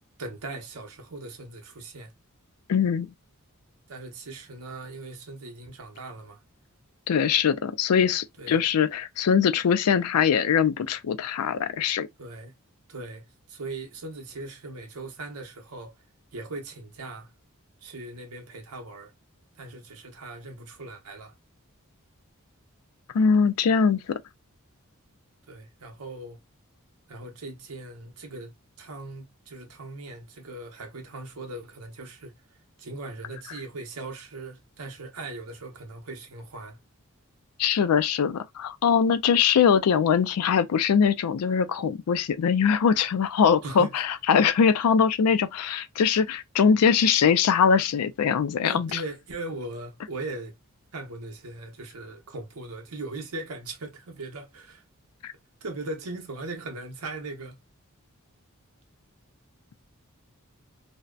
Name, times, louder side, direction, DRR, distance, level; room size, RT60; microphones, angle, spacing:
voice 1, 0.2-2.1 3.9-6.4 8.4-8.6 12.2-12.5 12.9-16.0 16.3-17.3 17.8-19.1 19.6-21.3 25.5-26.4 27.1-32.3 32.8-36.8 43.6-44.0 48.7-50.5 50.9-54.8 55.6-57.6, right 2 dB, 90° right, 0.7 m, -39 dB
voice 2, 2.7-3.1 7.1-12.1 23.1-24.2 37.6-49.0 55.2-55.3, left 6 dB, 90° left, 0.4 m, -22 dB
2.7 x 2.1 x 2.2 m
head